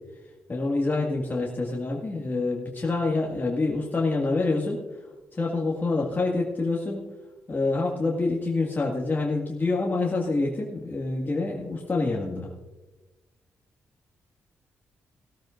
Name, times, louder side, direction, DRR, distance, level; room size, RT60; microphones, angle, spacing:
voice 1, 0.5-5.1 5.3-7.0 7.5-12.5, left 3 dB, 30° left, -2 dB, 1.9 m, -27 dB
17.5 x 13.5 x 2.5 m, 1.2 s
supercardioid pair, 50°, 6 cm